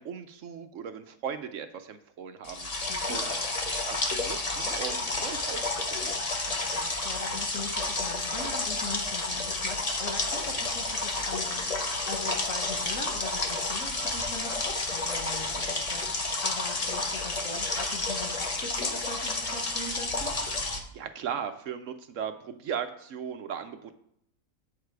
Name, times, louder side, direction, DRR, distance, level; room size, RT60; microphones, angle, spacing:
voice 1, 0.0-3.3 3.8-6.2 20.9-23.9, right 7 dB, 65° right, 9 dB, 0.9 m, -38 dB
sound 1, 2.4-20.8, left 2 dB, 30° left, 0.9 m, -31 dB
voice 2, 2.8-3.2 6.5-20.3, left 3 dB, 65° left, 3 dB, 1.6 m, -41 dB
8.0 x 6.7 x 4.6 m, 0.72 s
omnidirectional pair, 1.5 m